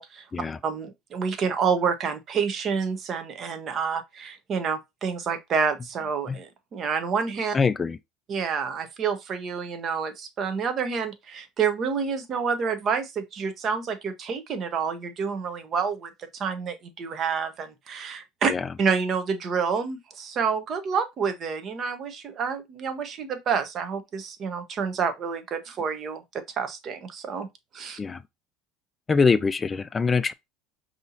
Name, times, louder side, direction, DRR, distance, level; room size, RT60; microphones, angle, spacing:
voice 1, 0.6-7.6 8.3-18.5 18.8-27.5 27.7-28.0, right 6 dB, 40° right, 0.8 m, -28 dB
voice 2, 7.5-8.0 18.5-18.6 28.0-28.2 29.1-30.3, left 5 dB, 25° left, 0.3 m, -23 dB
5.3 x 2.8 x 2.7 m
supercardioid pair, 105°, 0 cm